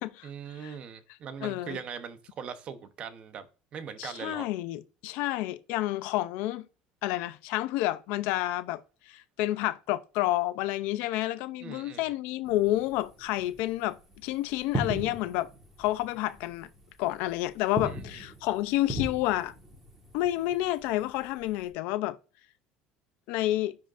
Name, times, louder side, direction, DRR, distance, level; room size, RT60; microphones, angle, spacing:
voice 1, 0.2-3.5 3.7-4.5 11.6-12.1 17.8-18.2, right 7 dB, 35° right, 0.9 m, -40 dB
voice 2, 1.4-1.8 4.0-6.7 7.0-8.8 9.1-15.5 15.8-16.7 17.0-19.5 20.1-22.2 23.3-23.8, left 15 dB, 70° left, 0.5 m, -29 dB
sound 1, 12.4-21.7, equal, 10° right, 1.6 m, -40 dB
10.0 x 3.7 x 2.6 m
cardioid pair, 155°, 3 cm